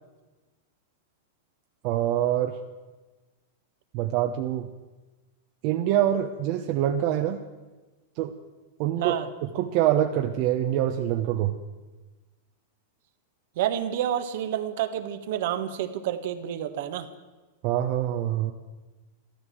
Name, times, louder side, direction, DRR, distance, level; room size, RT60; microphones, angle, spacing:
voice 1, 1.8-2.6 3.9-4.7 5.6-7.4 8.2-8.3 8.8-11.5 17.6-18.5, right 11 dB, 50° right, 5 dB, 1.0 m, -25 dB
voice 2, 13.6-17.1, right 10 dB, 65° right, 9 dB, 1.5 m, -29 dB
14.0 x 13.5 x 7.6 m, 1.2 s
hypercardioid pair, 130°, 0 cm